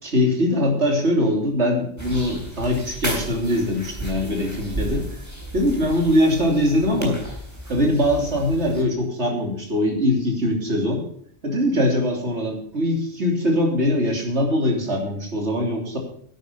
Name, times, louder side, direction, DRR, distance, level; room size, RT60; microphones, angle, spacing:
voice 1, 0.0-5.2 5.5-7.2 7.7-11.0 11.4-16.0, left 1 dB, 65° right, 0 dB, 3.5 m, -22 dB
sound 1, 2.0-8.8, right 2 dB, 15° right, 3.6 m, -34 dB
11.5 x 9.2 x 6.8 m, 0.63 s
omnidirectional pair, 1.3 m